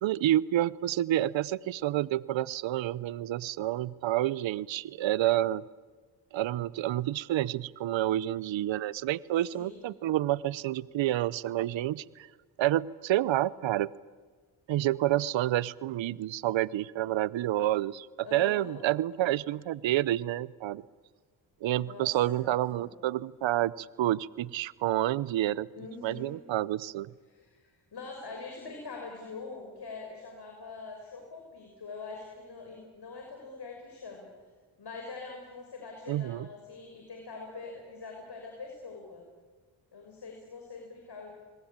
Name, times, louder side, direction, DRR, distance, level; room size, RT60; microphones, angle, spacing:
voice 1, 0.0-5.6 6.3-12.3 12.6-13.9 14.7-20.8 21.6-25.7 26.0-27.1 36.1-36.5, right 14 dB, 70° right, 20 dB, 0.7 m, -29 dB
voice 2, 9.5-9.9 18.2-18.8 21.8-22.9 25.7-26.4 27.3-34.3 34.8-39.2 39.9-41.3, left 4 dB, 55° left, 2 dB, 6.2 m, -44 dB
29.5 x 21.0 x 8.9 m, 1.4 s
supercardioid pair, 50°, 48 cm